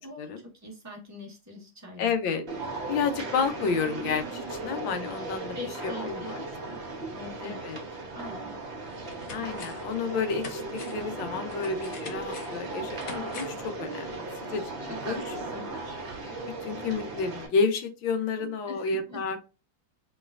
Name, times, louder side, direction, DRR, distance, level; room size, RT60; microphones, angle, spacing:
voice 1, 0.0-0.3 0.6-2.1 5.5-6.4 6.7-6.8 7.1-7.6 8.1-8.6 15.0-15.7 18.4-19.2, left 1 dB, 10° right, -1 dB, 0.8 m, -42 dB
voice 2, 2.0-2.4 2.9-5.6 5.8-6.4 7.4-7.8 9.3-14.7 15.0-15.2 16.2-19.4, left 5 dB, 85° left, 7 dB, 1.5 m, -30 dB
sound 1, 2.5-17.5, right 2 dB, 40° right, 1.1 m, -37 dB
sound 2, 8.3-8.4 8.9-9.9 10.3-13.7 14.0-14.1, left 5 dB, 60° left, 1.1 m, -45 dB
4.1 x 3.2 x 2.4 m, 0.30 s
omnidirectional pair, 2.0 m